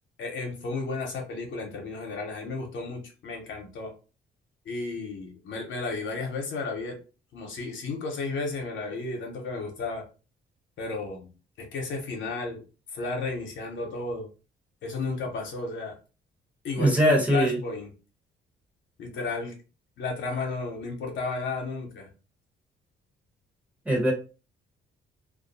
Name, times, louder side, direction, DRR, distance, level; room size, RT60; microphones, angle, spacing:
voice 1, 0.2-3.9 4.6-7.0 7.3-10.0 10.8-11.3 11.6-12.6 12.9-14.3 14.8-16.0 16.6-17.9 19.0-19.5 20.0-22.1, left 3 dB, 70° left, 1 dB, 0.8 m, -33 dB
voice 2, 16.8-17.6 23.8-24.1, right 1 dB, 5° right, -1 dB, 0.9 m, -21 dB
2.4 x 2.2 x 2.6 m, 0.34 s
cardioid pair, 90°, 20 cm